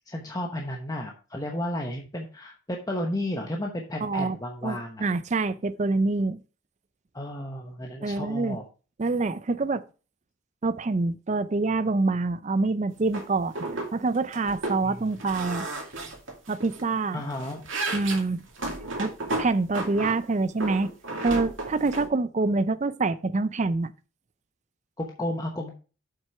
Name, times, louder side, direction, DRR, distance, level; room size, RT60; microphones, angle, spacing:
voice 1, 0.1-5.1 7.1-8.6 14.8-15.0 17.1-17.6 25.0-25.8, left 1 dB, 15° left, 1.0 m, -33 dB
voice 2, 4.0-4.4 4.6-6.4 8.0-8.6 9.0-9.8 10.6-13.5 13.9-15.7 16.5-17.2 17.9-18.4 19.0-20.9 21.2-23.9, right 3 dB, 35° right, 0.4 m, -26 dB
sound 1, 13.1-13.2 13.5-13.9 14.1-14.8 15.2-16.8 17.2-20.2 20.6-22.1, right 2 dB, 60° right, 2.5 m, -33 dB
7.5 x 6.1 x 4.6 m
head